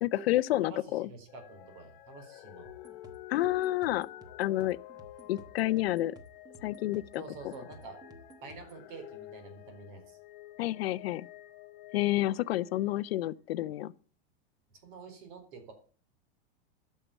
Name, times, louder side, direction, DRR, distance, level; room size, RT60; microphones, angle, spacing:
voice 1, 0.0-1.1 3.3-4.1 4.4-4.8 5.3-6.2 6.6-7.2 10.6-11.3 11.9-13.9, left 15 dB, 80° left, 0.7 m, -29 dB
voice 2, 0.6-2.7 7.2-8.0 8.4-10.2 14.8-15.7, right 4 dB, 55° right, 4.3 m, -48 dB
sound 1, 1.3-13.2 13.9-14.0, left 14 dB, 50° left, 1.4 m, -51 dB
sound 2, 2.7-8.8, right 2 dB, 10° right, 1.1 m, -55 dB
12.0 x 6.8 x 8.3 m
supercardioid pair, 165°, 31 cm